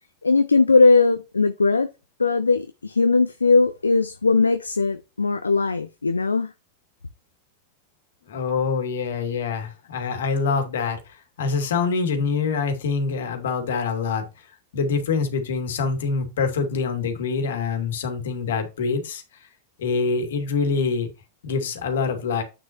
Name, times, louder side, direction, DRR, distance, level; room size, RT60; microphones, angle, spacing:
voice 1, 0.2-1.9 2.2-6.5, left 3 dB, 75° left, 0.6 m, -19 dB
voice 2, 8.3-14.2 14.7-19.2 19.8-21.1 21.4-22.4, left 5 dB, 60° left, 2.6 m, -25 dB
9.1 x 6.3 x 3.0 m
figure-of-eight pair, 90°, 0 cm